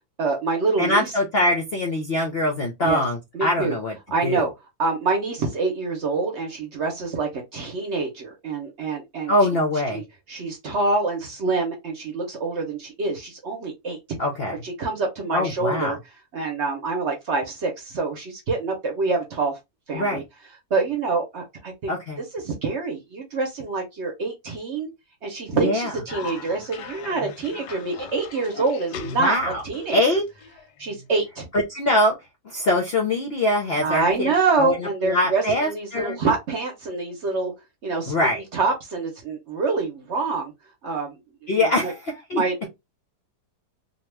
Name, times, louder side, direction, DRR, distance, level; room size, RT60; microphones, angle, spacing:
voice 1, 0.2-1.1 2.8-3.0 3.3-3.7 4.1-4.5 4.8-9.3 9.9-10.0 10.3-14.0 14.6-16.0 16.3-19.5 19.9-20.2 20.7-21.9 22.3-24.9 25.2-30.0 30.8-31.5 33.8-37.5 37.8-38.1 38.5-40.5 40.8-41.1 41.4-41.9 42.3-42.7, right 3 dB, 55° right, 0.9 m, -26 dB
voice 2, 0.8-4.0 4.2-4.4 9.3-10.0 14.2-14.6 15.3-16.0 19.9-20.2 21.9-22.2 25.5-25.9 29.0-29.6 29.9-30.2 31.5-32.1 32.4-36.2 38.1-38.4 41.5-42.4, left 1 dB, 60° left, 0.6 m, -23 dB
Cough, 26.1-31.1, left 5 dB, 90° left, 1.2 m, -40 dB
2.8 x 2.3 x 3.2 m
omnidirectional pair, 1.7 m